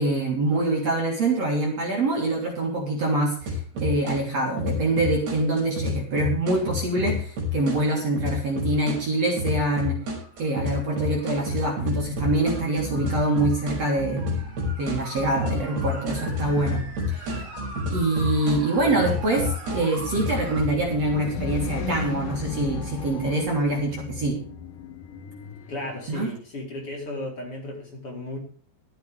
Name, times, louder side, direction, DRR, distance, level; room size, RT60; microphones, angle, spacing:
voice 1, 0.0-10.0 10.4-14.2 14.8-16.8 17.1-17.2 17.9-24.4 26.1-26.3, right 2 dB, 40° right, 0 dB, 4.1 m, -25 dB
sound 1, 3.4-4.2 4.6-9.0 9.4-20.6, left 3 dB, 75° right, 8.3 m, -29 dB
voice 2, 18.8-19.2 25.7-28.4, left 2 dB, 35° left, -2 dB, 4.8 m, -34 dB
sound 2, 19.8-26.2, left 5 dB, 60° left, 2.6 m, -35 dB
24.0 x 8.3 x 3.5 m, 0.43 s
omnidirectional pair, 4.9 m